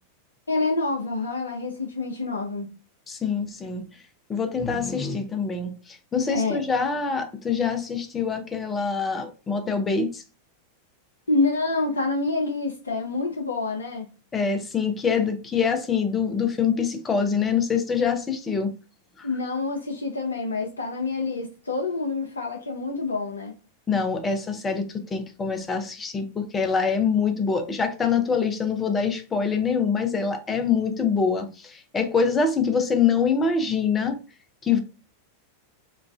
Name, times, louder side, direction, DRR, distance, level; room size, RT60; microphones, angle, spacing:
voice 1, 0.5-2.7 6.3-6.6 11.3-14.1 19.2-23.5, left 3 dB, 75° left, 0.4 m, -27 dB
voice 2, 3.1-3.9 4.3-10.2 14.3-18.7 23.9-34.2 34.6-34.8, left 5 dB, 20° left, 0.5 m, -25 dB
3.0 x 2.3 x 2.3 m
figure-of-eight pair, 90°, 0 cm